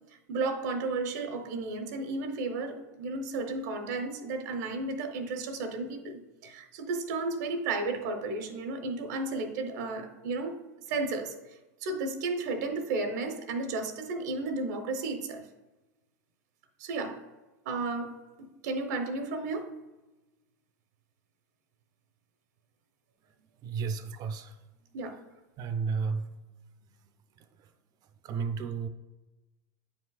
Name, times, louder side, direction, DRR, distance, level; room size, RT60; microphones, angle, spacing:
voice 1, 0.3-10.5 10.9-11.3 11.8-15.5 16.8-17.2 17.6-18.1 18.4-19.7 24.9-25.2, right 3 dB, 70° right, 6 dB, 0.8 m, -33 dB
voice 2, 23.6-24.5 25.6-26.4 28.2-28.9, right 5 dB, 40° right, 9 dB, 0.6 m, -32 dB
9.1 x 5.0 x 2.3 m, 1.1 s
hypercardioid pair, 100°, 10 cm